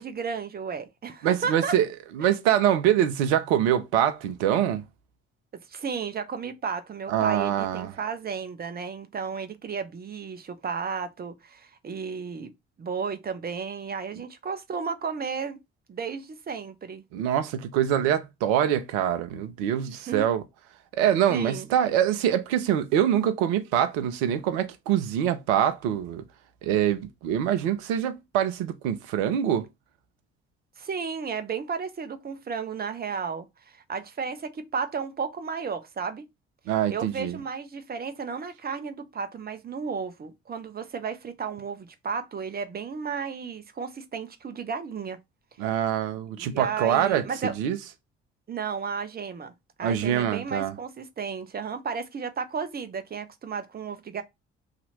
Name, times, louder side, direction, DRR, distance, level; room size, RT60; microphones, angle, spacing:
voice 1, 0.0-1.8 5.7-12.5 12.8-15.6 15.9-17.0 19.9-20.3 21.3-21.7 30.8-36.2 36.9-45.2 46.4-47.5 48.5-49.5 49.8-54.2, right 6 dB, 30° right, 0.7 m, -33 dB
voice 2, 1.2-1.9 2.1-4.8 7.1-7.9 17.1-20.4 20.9-26.2 26.6-29.7 36.7-37.4 45.6-47.8 49.8-50.7, right 10 dB, 70° right, 0.6 m, -24 dB
2.8 x 2.5 x 4.0 m
figure-of-eight pair, 45°, 33 cm